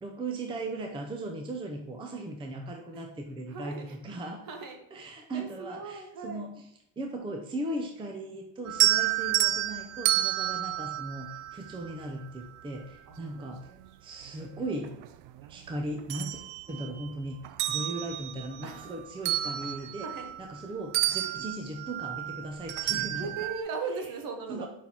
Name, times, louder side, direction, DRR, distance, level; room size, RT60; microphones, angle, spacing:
voice 1, 0.0-4.4 4.9-6.7 7.0-13.6 14.0-15.0 15.5-17.4 17.7-20.1 20.4-23.3 24.5-24.7, right 2 dB, 15° right, 2 dB, 0.5 m, -37 dB
voice 2, 3.5-4.0 4.5-4.8 5.3-6.4 8.6-8.7 13.1-13.4 17.6-17.9 18.6-19.0 19.8-20.3 23.2-24.7, right 4 dB, 55° right, 4 dB, 1.3 m, -39 dB
sound 1, 8.7-12.0 13.6-13.7 14.3-15.5 15.8-17.1 17.4-20.6 20.9-23.6, right 14 dB, 75° right, 0.5 m, -30 dB
5.8 x 4.5 x 3.8 m, 0.79 s
cardioid pair, 140°, 39 cm